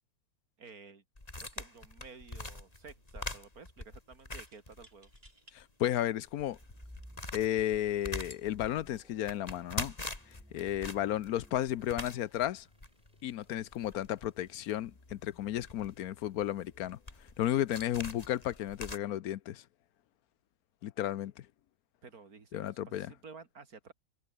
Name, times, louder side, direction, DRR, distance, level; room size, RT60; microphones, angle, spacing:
voice 1, 0.6-1.0 1.3-5.1 22.0-23.9, right 4 dB, 85° right, 3.0 m, -52 dB
sound 1, 1.2-5.3 5.6-5.7 6.2-19.0, left 2 dB, 25° left, 3.1 m, -44 dB
sound 2, 1.5-1.6 1.9-2.5 4.5-5.6 6.3-6.4 7.3-7.6, right 2 dB, 40° right, 5.2 m, -63 dB
voice 2, 5.5-6.6 7.3-9.9 10.3-12.7 13.2-17.0 17.4-19.6 20.8-21.5 22.5-23.1, left 12 dB, 85° left, 1.2 m, -33 dB
sound 3, 6.4-7.9 8.3-13.8 15.4-15.7, equal, 5° right, 2.3 m, -57 dB
omnidirectional pair, 1.5 m